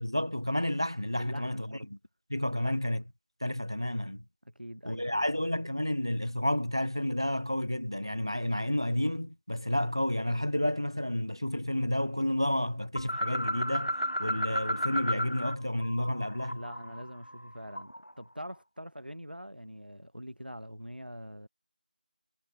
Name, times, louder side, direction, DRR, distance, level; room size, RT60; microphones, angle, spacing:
voice 1, 0.0-1.7 2.3-3.0 3.4-4.2 4.9-13.9 14.2-16.6, left 1 dB, 30° right, 0.5 m, -30 dB
voice 2, 1.2-1.9 2.5-2.8 4.5-5.3 16.5-21.5, equal, 70° right, 7.2 m, -44 dB
sound 1, 13.0-15.6 15.8-18.1, equal, 40° left, 0.4 m, -33 dB
figure-of-eight pair, 180°, 5 cm